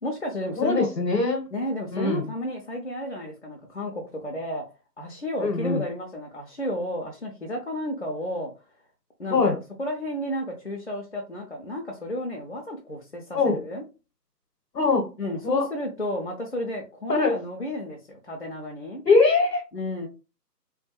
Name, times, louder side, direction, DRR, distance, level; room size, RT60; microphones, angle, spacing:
voice 1, 0.0-0.9 1.5-4.6 5.0-8.5 9.2-13.8 15.2-19.0 19.7-20.1, equal, 45° left, 0 dB, 0.5 m, -32 dB
voice 2, 0.6-1.4 1.9-2.2 5.4-5.8 9.3-9.6 13.3-13.6 14.7-15.1 15.4-15.7 17.1-17.3 19.1-19.6, left 3 dB, 75° left, 2 dB, 0.8 m, -22 dB
2.2 x 2.2 x 2.7 m, 0.31 s
figure-of-eight pair, 155°, 49 cm